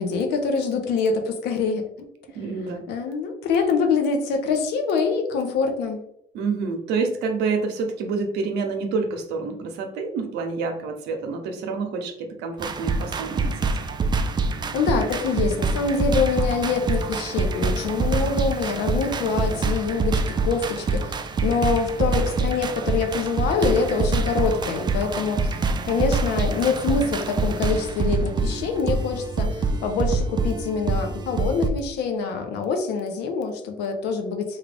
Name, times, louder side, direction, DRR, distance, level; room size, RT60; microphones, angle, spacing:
voice 1, 0.0-1.8 2.9-6.0 14.7-21.1 21.4-25.5 25.8-34.6, left 5 dB, 85° left, 5 dB, 0.7 m, -25 dB
voice 2, 2.3-2.8 6.3-13.7, right 4 dB, 90° right, 5 dB, 0.7 m, -28 dB
sound 1, 12.6-31.7, right 3 dB, 25° right, 0.3 m, -25 dB
3.6 x 2.3 x 3.4 m, 0.74 s
cardioid pair, 110°, 17 cm